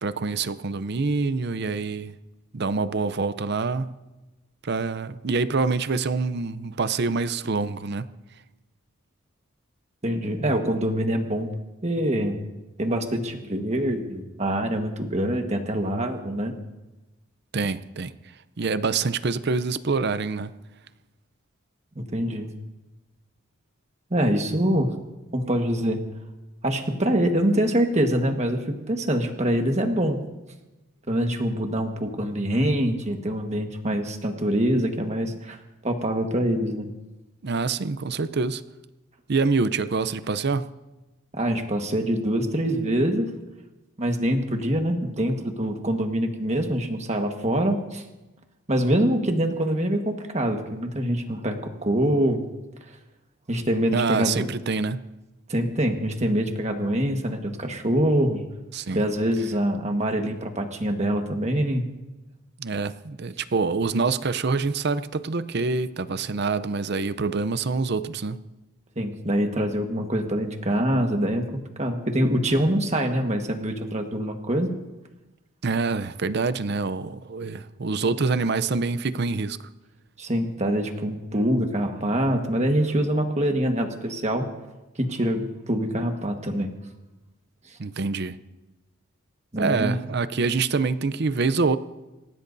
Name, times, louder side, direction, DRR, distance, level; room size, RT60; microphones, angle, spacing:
voice 1, 0.0-2.2 2.5-3.9 4.6-8.1 17.5-18.1 18.6-20.5 24.7-24.8 37.4-38.6 39.3-40.7 53.9-55.0 58.7-59.1 62.6-68.4 75.6-79.6 87.8-88.4 89.6-91.8, right 4 dB, 50° right, 14 dB, 0.6 m, -26 dB
voice 2, 10.0-11.5 11.8-12.4 12.8-16.5 21.9-22.5 24.1-24.9 25.3-26.0 26.6-30.2 31.1-35.6 35.8-36.9 41.3-43.3 44.0-48.0 48.7-52.4 53.5-54.5 55.5-58.4 58.9-61.9 69.0-74.7 80.2-84.4 85.0-86.7 87.7-87.8 89.5-90.0, equal, 30° right, 4 dB, 1.4 m, -25 dB
27.5 x 16.0 x 2.7 m, 1.1 s
head